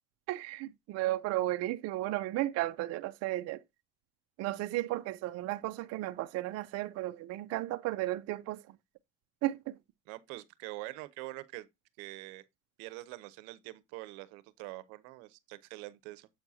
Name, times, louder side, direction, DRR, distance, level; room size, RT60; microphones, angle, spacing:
voice 1, 0.3-3.6 4.4-8.8 9.4-9.8, right 16 dB, 55° right, 0.6 m, -34 dB
voice 2, 10.1-11.7 12.0-12.4 12.8-16.3, right 19 dB, 90° right, 0.8 m, -45 dB
7.9 x 6.0 x 2.7 m
cardioid pair, 130°, 31 cm